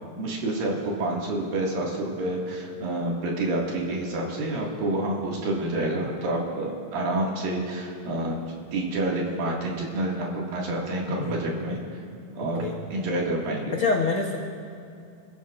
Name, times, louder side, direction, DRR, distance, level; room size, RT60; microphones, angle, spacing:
voice 1, 0.2-8.4 8.7-11.8 12.3-12.6 12.9-13.8, right 1 dB, 80° right, -2 dB, 3.9 m, -28 dB
voice 2, 13.7-14.4, left 4 dB, 75° left, 0 dB, 1.2 m, -25 dB
28.0 x 15.0 x 2.5 m, 2.5 s
omnidirectional pair, 4.0 m